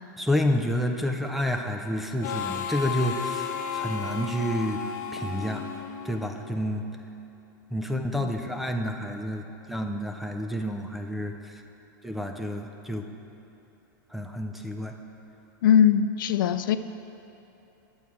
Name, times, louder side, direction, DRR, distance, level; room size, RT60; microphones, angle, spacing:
voice 1, 0.2-4.8 5.1-5.6 6.1-6.8 7.7-11.3 12.0-13.1 14.1-14.9, left 1 dB, ahead, 4 dB, 0.3 m, -29 dB
Harmonica, 2.2-6.7, left 6 dB, 60° left, 0.8 m, -34 dB
voice 2, 15.6-16.8, left 9 dB, 85° left, 11 dB, 0.4 m, -20 dB
10.5 x 7.1 x 4.7 m, 3.0 s
supercardioid pair, 160°, 11 cm